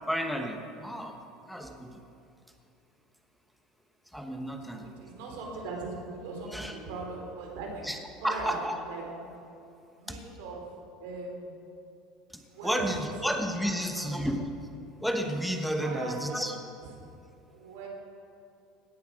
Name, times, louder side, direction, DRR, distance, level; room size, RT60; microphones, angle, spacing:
voice 1, 0.1-1.2 1.5-2.0 4.1-4.9 6.5-6.8 7.8-8.0 8.2-8.7 10.1-10.2 12.3-14.5 15.0-16.6, equal, ahead, 4 dB, 1.0 m, -32 dB
voice 2, 4.7-7.9 8.2-8.6 8.9-9.6 10.0-10.7 11.0-11.6 12.5-13.3 13.6-14.3 15.8-16.9 17.5-17.9, right 3 dB, 80° right, 0 dB, 3.4 m, -40 dB
17.0 x 8.1 x 6.2 m, 2.7 s
supercardioid pair, 125°, 0 cm